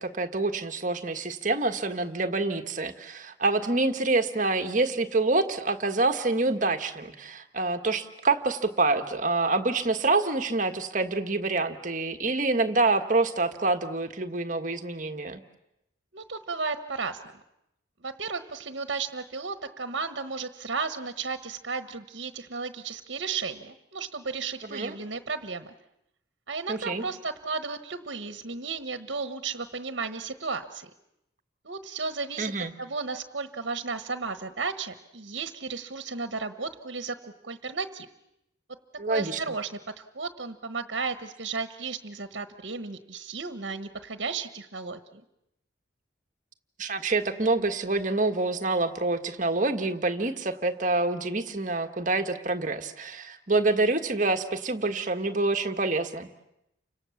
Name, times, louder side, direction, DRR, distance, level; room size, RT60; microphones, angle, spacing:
voice 1, 0.0-15.4 24.7-24.9 26.7-27.0 32.4-32.7 39.0-39.4 46.8-56.3, right 3 dB, 40° right, 7 dB, 1.5 m, -27 dB
voice 2, 16.1-17.2 18.0-25.7 26.5-30.9 31.6-32.5 32.8-38.1 39.1-45.2, right 4 dB, 70° right, 9 dB, 1.2 m, -34 dB
30.0 x 25.5 x 7.2 m, 0.84 s
head